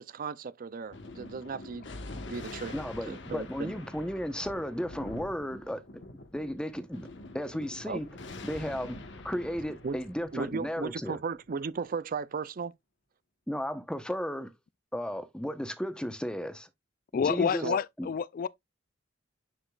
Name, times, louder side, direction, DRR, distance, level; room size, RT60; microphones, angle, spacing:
voice 1, 0.0-1.9 2.3-2.7 3.0-3.7 7.9-8.0 9.8-10.0 10.3-12.7 17.6-17.8, right 5 dB, 50° right, 0.5 m, -36 dB
Thunder, 0.9-11.8, left 2 dB, 65° left, 1.3 m, -45 dB
voice 2, 2.7-5.8 6.3-7.1 7.3-8.1 8.4-9.0 9.2-11.2 13.5-14.5 14.9-16.7 17.1-17.7 18.0-18.1, equal, 5° left, 0.9 m, -34 dB
voice 3, 17.1-18.5, left 6 dB, 50° left, 0.3 m, -28 dB
9.9 x 5.1 x 2.4 m
head